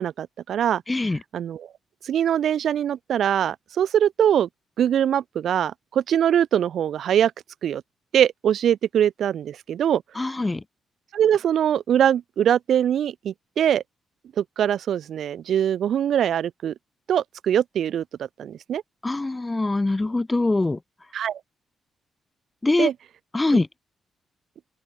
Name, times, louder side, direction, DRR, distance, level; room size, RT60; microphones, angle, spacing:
voice 1, 0.0-0.8 1.3-1.7 2.0-4.5 4.8-7.3 7.6-7.8 8.1-10.3 11.1-13.8 14.4-16.7 17.1-18.0 18.4-18.8 21.1-21.4 22.8-22.9, right 9 dB, 65° right, 0.5 m, -22 dB
voice 2, 0.9-1.2 10.2-10.6 19.0-20.8 22.6-22.9 23.3-23.7, left 2 dB, 15° left, 0.6 m, -23 dB
open air
wide cardioid pair, 170°, 0 cm